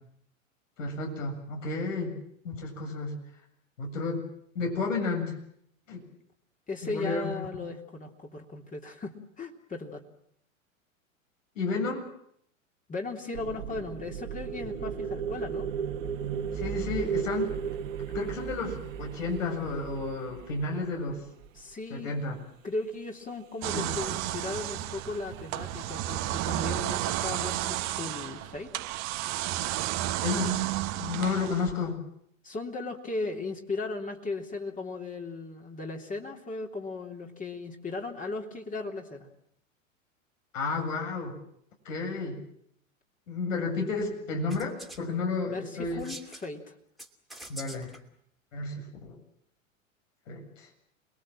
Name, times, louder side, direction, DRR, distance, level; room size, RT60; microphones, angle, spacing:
voice 1, 0.8-2.1 2.4-3.2 3.8-4.2 4.5-5.4 5.9-6.0 6.8-7.6 11.6-12.1 16.5-17.5 18.1-21.2 21.9-22.4 23.7-23.9 30.2-30.6 31.0-32.0 40.5-41.3 41.8-42.4 43.3-46.0 47.5-48.0 48.5-49.2 50.3-50.7, left 3 dB, 70° left, 3 dB, 7.6 m, -32 dB
voice 2, 6.7-10.0 12.9-15.7 21.5-22.1 22.6-28.7 32.4-39.3 45.4-46.7, left 3 dB, 20° left, 1 dB, 3.2 m, -37 dB
sound 1, 13.3-21.5, right 7 dB, 70° right, 2.4 m, -35 dB
sound 2, 23.6-31.9, right 14 dB, 40° right, 1.6 m, -32 dB
sound 3, 44.5-45.0 45.8-46.5 47.0-48.0, right 1 dB, ahead, 2.8 m, -44 dB
27.5 x 21.0 x 7.6 m, 0.71 s
hypercardioid pair, 100°, 40 cm